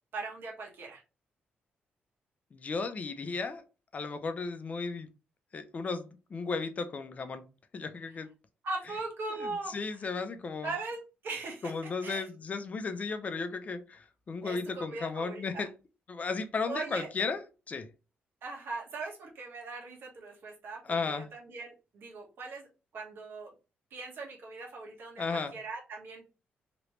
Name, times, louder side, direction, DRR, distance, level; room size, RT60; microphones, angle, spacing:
voice 1, 0.1-1.0 8.6-9.7 10.6-12.2 14.4-15.6 16.7-17.1 18.4-22.7 22.9-23.5 23.9-26.3, right 3 dB, 65° right, 1.3 m, -40 dB
voice 2, 2.5-3.6 3.9-5.1 5.5-7.4 7.7-8.3 9.3-10.7 11.6-15.7 16.1-17.4 17.7-17.9 20.8-21.3 25.2-25.5, left 4 dB, 40° left, 0.5 m, -35 dB
3.1 x 3.0 x 3.0 m
cardioid pair, 100°, 4 cm